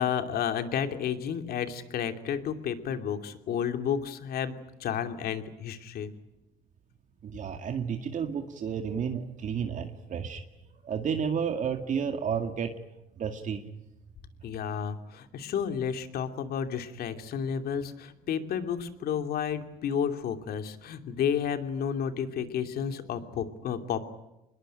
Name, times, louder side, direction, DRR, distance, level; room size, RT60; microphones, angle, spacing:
voice 1, 0.0-6.1 14.4-24.0, left 8 dB, 65° left, 7 dB, 2.8 m, -31 dB
voice 2, 7.2-10.4 10.8-12.7 13.2-13.6, right 7 dB, 50° right, 5 dB, 2.1 m, -31 dB
26.0 x 21.0 x 9.0 m, 0.96 s
cardioid pair, 110°, 17 cm